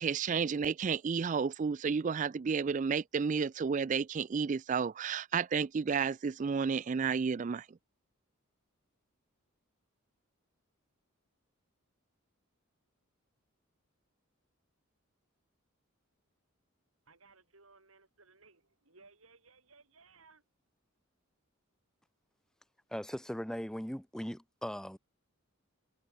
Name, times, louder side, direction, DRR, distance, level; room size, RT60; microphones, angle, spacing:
voice 1, 0.0-7.7, right 5 dB, 35° right, 0.3 m, -31 dB
voice 2, 17.0-20.4, right 4 dB, 75° right, 5.0 m, -61 dB
voice 3, 22.9-25.0, equal, 5° left, 1.0 m, -39 dB
head